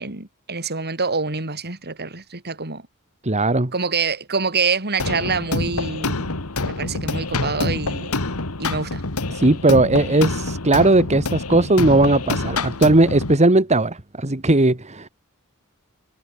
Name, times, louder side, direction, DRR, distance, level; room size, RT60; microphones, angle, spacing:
voice 1, 0.0-2.9 3.7-6.4 6.6-8.1 8.6-9.0, right 4 dB, 45° right, 4.3 m, -26 dB
voice 2, 3.2-3.7 9.3-15.1, right 2 dB, 30° right, 1.9 m, -17 dB
sound 1, 5.0-13.4, left 3 dB, 75° left, 2.1 m, -26 dB
head